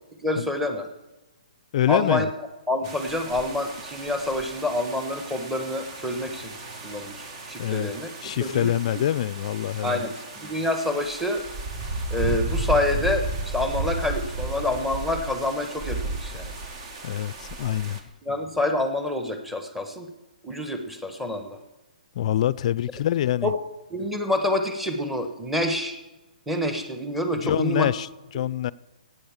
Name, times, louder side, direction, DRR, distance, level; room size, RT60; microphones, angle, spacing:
voice 1, 0.2-0.9 1.9-2.3 2.7-6.5 6.8-9.1 9.8-10.1 10.4-11.4 12.1-16.5 18.2-20.1 20.4-21.6 23.4-23.6 23.9-26.0 26.5-27.9, left 1 dB, 5° right, 1.4 m, -27 dB
voice 2, 1.7-2.3 7.6-7.9 8.2-10.1 17.0-18.0 22.1-23.5 27.4-28.1 28.3-28.7, left 11 dB, 50° left, 0.5 m, -25 dB
sound 1, 2.8-18.0, right 2 dB, 45° right, 2.1 m, -34 dB
15.0 x 9.1 x 7.3 m
hypercardioid pair, 140°, 5 cm